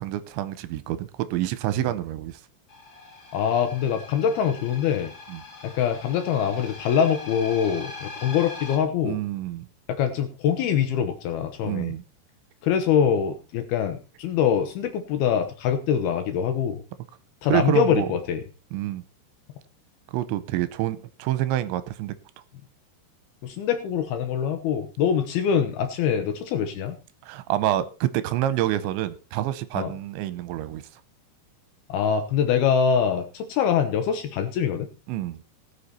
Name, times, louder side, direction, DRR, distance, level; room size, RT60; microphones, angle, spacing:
voice 1, 0.0-2.4 5.3-5.4 9.0-9.7 11.6-12.0 17.5-18.1 18.7-19.0 20.1-22.1 27.2-30.8 35.1-35.4, right 13 dB, 85° right, 14 dB, 3.0 m, -27 dB
sound 1, 2.7-8.8, left 3 dB, 30° left, 2.6 m, -41 dB
voice 2, 3.3-5.1 5.6-9.2 9.9-11.9 12.6-16.8 17.4-18.4 23.4-27.0 29.8-29.9 31.9-34.9, left 8 dB, 75° left, 8 dB, 2.5 m, -24 dB
18.5 x 6.7 x 4.2 m, 0.34 s
omnidirectional pair, 5.3 m